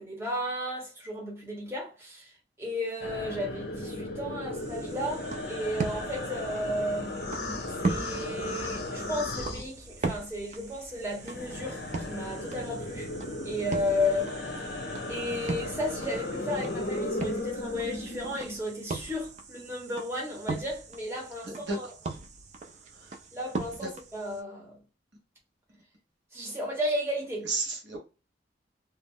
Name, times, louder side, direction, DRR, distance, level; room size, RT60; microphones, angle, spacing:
voice 1, 0.0-2.3 2.6-7.2 7.8-13.1 13.4-14.6 15.1-21.9 23.3-24.8 26.3-27.5, left 1 dB, 15° right, 0.8 m, -34 dB
sound 1, 3.0-10.3 10.6-18.6, left 2 dB, 55° left, 0.5 m, -36 dB
sound 2, 4.6-24.4, right 3 dB, 40° right, 0.3 m, -39 dB
voice 2, 21.4-21.8 23.0-23.1 23.8-23.9 27.5-28.0, right 3 dB, 75° right, 0.8 m, -32 dB
2.3 x 2.0 x 3.4 m
head